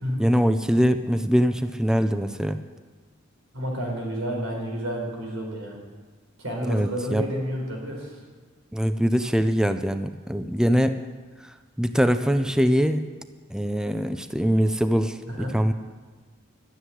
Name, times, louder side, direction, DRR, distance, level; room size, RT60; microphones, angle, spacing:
voice 1, 0.2-2.6 6.6-7.3 8.7-11.0 11.4-13.1 13.5-15.7, equal, 5° right, 10 dB, 0.4 m, -23 dB
voice 2, 3.5-5.8 6.4-8.2 15.3-15.5, equal, 85° right, 0 dB, 4.3 m, -30 dB
12.5 x 8.0 x 9.6 m, 1.4 s
head